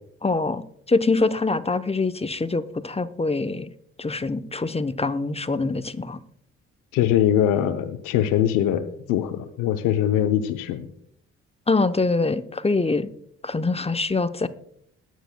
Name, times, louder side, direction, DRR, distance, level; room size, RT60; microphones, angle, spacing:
voice 1, 0.2-0.6 0.9-3.7 4.0-6.2 11.7-13.1 13.4-14.5, left 3 dB, 20° left, 11 dB, 0.8 m, -24 dB
voice 2, 6.9-10.9, left 10 dB, 85° left, 8 dB, 0.7 m, -22 dB
20.5 x 9.3 x 2.2 m, 0.68 s
supercardioid pair, 50°, 31 cm